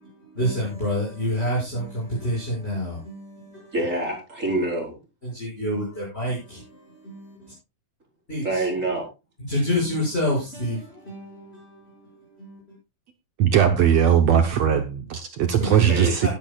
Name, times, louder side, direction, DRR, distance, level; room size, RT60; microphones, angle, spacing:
voice 1, 0.4-1.8 2.2-3.0 5.6-6.4 8.3-8.6 9.5-10.8 11.1-11.2 15.6-15.9 16.2-16.3, left 1 dB, 15° left, 6.4 m, -26 dB
voice 2, 3.7-5.0 8.4-9.1 15.9-16.1, right 2 dB, 20° right, 4.9 m, -26 dB
voice 3, 13.4-16.3, right 8 dB, 70° right, 1.7 m, -19 dB
17.0 x 12.5 x 2.4 m
omnidirectional pair, 4.1 m